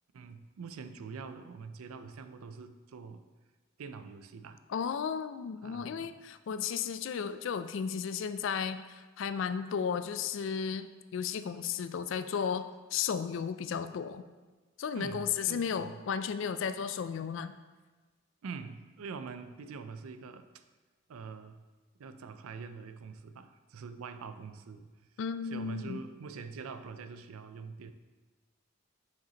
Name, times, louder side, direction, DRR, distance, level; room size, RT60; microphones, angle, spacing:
voice 1, 0.1-3.2 3.8-4.6 5.6-6.1 14.9-16.0 18.4-20.6 21.1-21.6 22.0-25.1 25.4-27.9, right 5 dB, 85° right, 10 dB, 0.4 m, -44 dB
voice 2, 4.7-14.2 14.8-17.5 25.2-26.0, left 7 dB, 60° left, 12 dB, 0.3 m, -34 dB
7.6 x 5.8 x 2.9 m, 1.3 s
head